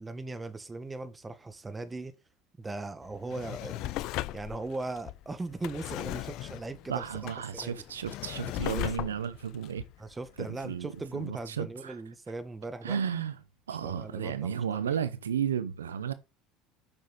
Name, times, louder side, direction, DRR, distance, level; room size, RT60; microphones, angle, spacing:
voice 1, 0.0-2.1 2.6-3.9 4.3-7.0 7.5-7.7 8.7-9.1 10.0-13.0 13.8-15.0, right 3 dB, 15° right, 1.5 m, -39 dB
Drawer open or close, 3.1-10.8 11.2-11.3, left 15 dB, 60° left, 0.4 m, -38 dB
voice 2, 6.9-9.8 10.4-12.0 12.8-13.4 13.7-16.1, right 8 dB, 85° right, 0.6 m, -33 dB
8.9 x 6.3 x 4.0 m
hypercardioid pair, 70°, 0 cm